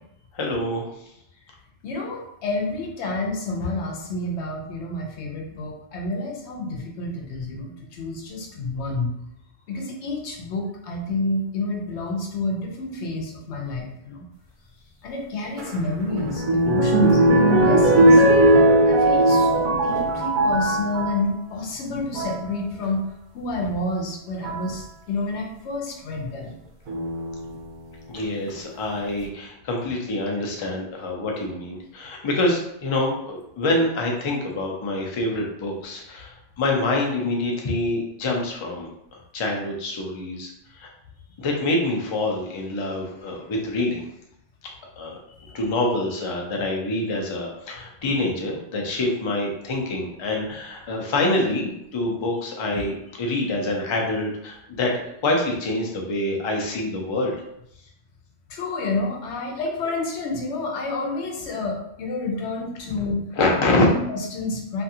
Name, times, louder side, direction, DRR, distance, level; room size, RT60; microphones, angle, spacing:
voice 1, 0.3-0.9 28.1-40.9 41.4-44.0 45.0-57.4 63.4-63.9, left 2 dB, 45° left, 0 dB, 0.3 m, -26 dB
voice 2, 1.8-9.1 9.7-14.2 15.0-18.2 18.8-23.0 23.3-26.6 52.7-52.8 58.5-63.2 63.8-64.8, left 2 dB, 85° left, 0 dB, 0.9 m, -29 dB
sound 1, 15.6-21.2 21.9-22.4 23.6-23.7 24.4-24.7 26.9-27.5 28.2-28.3 28.5-28.6, right 1 dB, 55° right, 0.6 m, -18 dB
2.5 x 2.4 x 2.7 m, 0.78 s
omnidirectional pair, 1.1 m